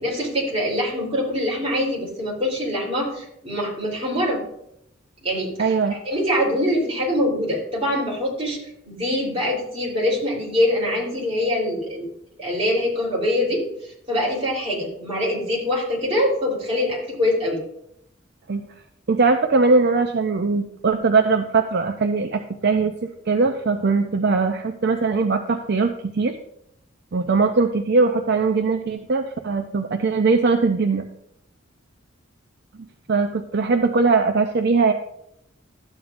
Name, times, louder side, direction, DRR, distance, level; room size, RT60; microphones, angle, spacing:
voice 1, 0.0-4.4 5.2-8.6 8.9-12.1 12.4-13.6 14.1-17.6, left 1 dB, 30° right, -4 dB, 3.5 m, -24 dB
voice 2, 5.6-6.0 18.5-18.6 19.1-26.4 27.1-31.1 33.1-34.9, right 4 dB, 55° right, 6 dB, 0.5 m, -20 dB
12.5 x 8.7 x 2.5 m, 0.77 s
head